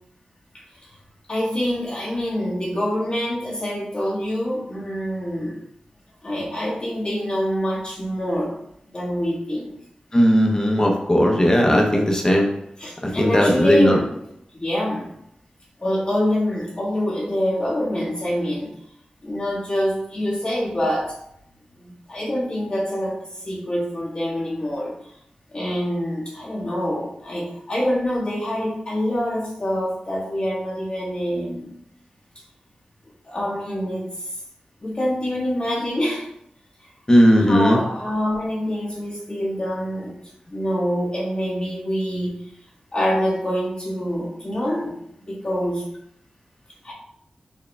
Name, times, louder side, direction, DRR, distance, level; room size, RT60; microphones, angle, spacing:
voice 1, 0.5-0.9 1.3-5.6 6.2-8.5 8.9-9.7 12.8-14.3 14.5-15.2 15.8-18.7 19.2-21.1 21.8-24.9 25.5-31.7 33.2-34.3 34.8-36.3 36.8-36.9 37.4-40.2 40.5-42.3 42.9-45.0 45.3-45.9 46.8-46.9, equal, 40° left, -6 dB, 1.3 m, -25 dB
voice 2, 10.1-12.5 13.2-14.0 37.1-37.8, equal, 20° left, 0 dB, 0.7 m, -16 dB
4.5 x 2.2 x 3.3 m, 0.76 s
wide cardioid pair, 105°, 3 cm